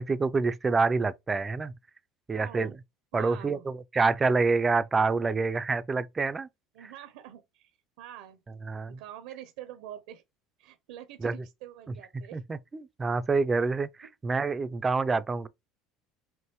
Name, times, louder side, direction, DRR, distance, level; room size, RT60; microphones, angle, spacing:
voice 1, 0.0-1.7 2.3-2.7 3.1-6.5 6.8-6.9 8.6-9.0 11.2-11.4 12.3-15.5, right 4 dB, 25° right, 0.5 m, -27 dB
voice 2, 2.3-2.7 3.1-3.6 5.2-5.4 6.7-7.7 8.0-8.4 8.9-10.2 10.6-12.4, right 11 dB, 80° right, 0.7 m, -45 dB
5.3 x 2.6 x 3.0 m
supercardioid pair, 90°, 0 cm